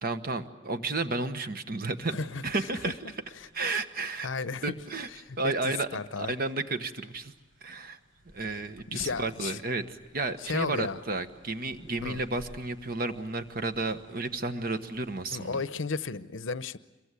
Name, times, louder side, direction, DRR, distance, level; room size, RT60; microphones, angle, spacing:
voice 1, 0.0-2.2 2.4-2.9 3.5-4.3 4.6-5.1 5.4-7.3 7.6-8.0 8.3-15.6, right 3 dB, 50° right, 10 dB, 1.3 m, -32 dB
voice 2, 2.1-2.4 3.4-3.5 4.2-4.7 5.1-6.3 8.9-9.6 10.4-11.0 12.0-12.2 15.3-16.8, left 4 dB, 75° left, 15 dB, 0.8 m, -34 dB
sound 1, 2.3-15.5, equal, 85° right, 5.8 m, -56 dB
26.5 x 23.0 x 8.3 m, 1.1 s
head